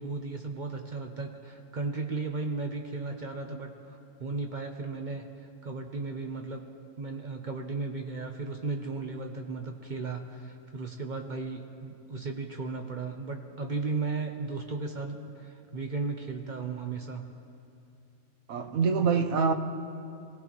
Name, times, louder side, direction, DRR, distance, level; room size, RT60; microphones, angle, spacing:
voice 1, 0.0-6.7 7.0-17.2, right 3 dB, 45° right, 3 dB, 0.6 m, -35 dB
voice 2, 18.5-19.5, right 5 dB, 65° right, 5 dB, 1.1 m, -25 dB
23.5 x 17.0 x 3.0 m, 2.6 s
omnidirectional pair, 1.7 m